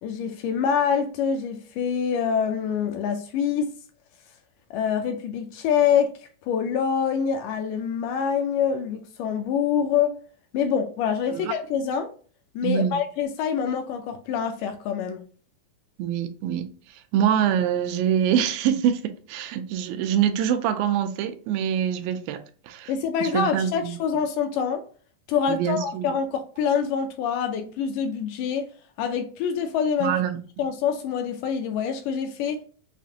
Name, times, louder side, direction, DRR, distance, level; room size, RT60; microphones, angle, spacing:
voice 1, 0.0-3.7 4.7-6.1 6.5-10.1 10.5-12.1 12.6-15.2 22.9-24.8 25.3-28.7 29.0-30.1 30.6-32.6, left 7 dB, 80° left, 1.9 m, -25 dB
voice 2, 12.6-13.0 16.0-22.4 22.7-22.9 23.2-24.0 25.5-26.1 30.0-30.4, right 9 dB, 90° right, 2.3 m, -25 dB
7.0 x 2.5 x 2.8 m
omnidirectional pair, 4.0 m